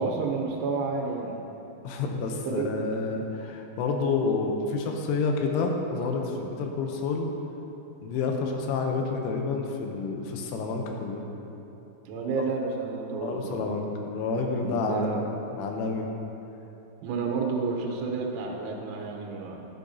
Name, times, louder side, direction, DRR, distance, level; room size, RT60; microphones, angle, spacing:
voice 1, 0.0-1.4 2.4-2.9 12.1-13.7 14.6-15.3 17.0-19.7, right 4 dB, 80° right, 0 dB, 3.4 m, -30 dB
voice 2, 1.8-7.3 8.0-11.2 13.2-15.1 15.5-16.1, left 4 dB, 80° left, 2 dB, 3.3 m, -29 dB
13.5 x 10.5 x 2.8 m, 3.0 s
omnidirectional pair, 5.6 m